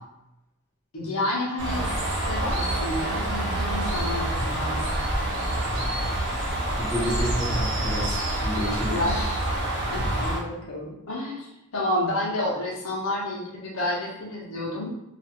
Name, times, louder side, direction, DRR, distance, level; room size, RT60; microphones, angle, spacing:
voice 1, 0.9-1.9 2.3-5.0 8.9-9.2 9.8-14.9, left 1 dB, 75° left, -5 dB, 0.8 m, -30 dB
Bird, 1.6-10.4, right 1 dB, 60° right, 0.8 m, -27 dB
voice 2, 6.6-9.4, equal, 15° left, -10 dB, 0.9 m, -31 dB
2.4 x 2.4 x 2.7 m, 0.88 s
head